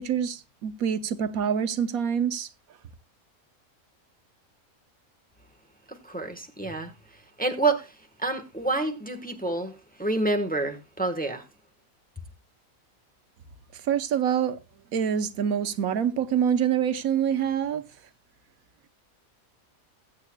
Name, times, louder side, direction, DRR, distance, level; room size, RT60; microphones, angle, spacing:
voice 1, 0.0-2.5 13.7-14.6 14.9-17.8, right 8 dB, 85° right, 1.3 m, -26 dB
voice 2, 5.9-6.9 7.4-7.9 8.2-11.4, right 2 dB, 5° left, 1.0 m, -28 dB
20.5 x 8.2 x 2.2 m
omnidirectional pair, 1.5 m